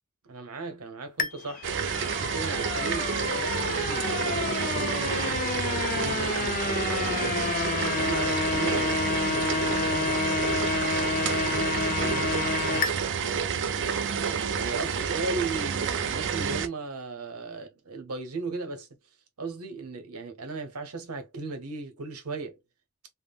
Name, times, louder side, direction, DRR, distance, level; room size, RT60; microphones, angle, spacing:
voice 1, 0.3-1.7 2.1-7.6 8.0-10.7 11.2-13.0 13.7-18.9 19.4-22.6, right 3 dB, 90° right, 0.8 m, -37 dB
sound 1, 1.2-12.9, left 5 dB, 40° left, 0.3 m, -30 dB
sound 2, 1.6-16.7, right 6 dB, 60° right, 0.4 m, -29 dB
3.5 x 2.0 x 2.2 m
head